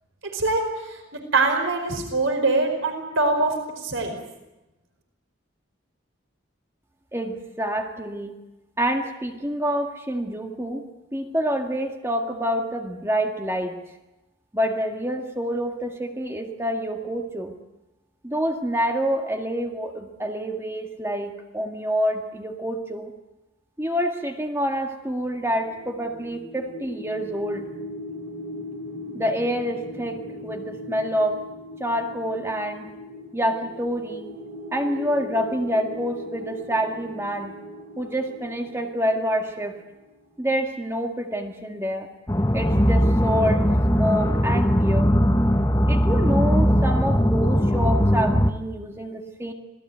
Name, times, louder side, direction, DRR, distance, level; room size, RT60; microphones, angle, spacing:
voice 1, 1.3-4.2, right 3 dB, 90° right, 5 dB, 4.6 m, -23 dB
voice 2, 7.1-8.3 8.8-10.8 11.1-13.8 14.5-17.5 18.2-23.1 23.8-27.7 29.1-31.4 31.8-32.9 33.3-34.3 34.7-37.5 38.0-39.8 40.4-42.1 42.5-45.1 45.9-49.5, equal, 15° right, 3 dB, 1.9 m, -27 dB
sound 1, 25.3-40.3, left 1 dB, 40° right, 7.8 m, -39 dB
sound 2, 42.3-48.5, equal, 15° left, 1.3 m, -20 dB
26.5 x 19.0 x 9.3 m, 0.98 s
head